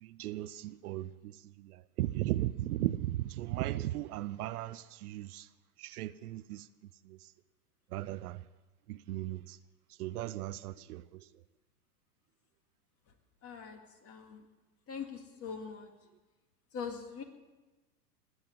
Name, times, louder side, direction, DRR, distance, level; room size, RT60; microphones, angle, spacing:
voice 1, 0.0-5.5 5.8-6.7 7.0-7.2 7.9-8.4 8.9-9.6 10.0-11.3, right 15 dB, 65° right, 0.7 m, -37 dB
voice 2, 13.4-13.8 14.0-14.4 14.9-15.9 16.7-17.2, left 6 dB, 30° left, 2.2 m, -42 dB
20.5 x 8.2 x 7.5 m
hypercardioid pair, 115°, 49 cm